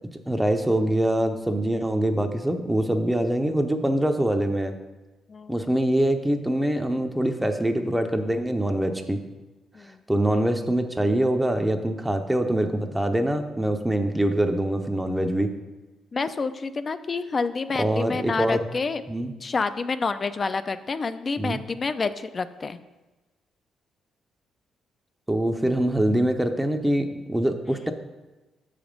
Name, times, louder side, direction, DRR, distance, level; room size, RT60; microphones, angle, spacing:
voice 1, 0.3-4.7 5.5-9.3 10.1-15.5 17.7-18.6 19.1-19.3 21.4-21.6 25.3-27.9, right 1 dB, 10° right, 6 dB, 0.6 m, -24 dB
voice 2, 5.3-5.6 9.7-10.0 16.1-19.0 19.4-22.8, left 4 dB, 35° left, 12 dB, 0.4 m, -28 dB
6.9 x 5.0 x 5.2 m, 1.1 s
cardioid pair, 90°, 0 cm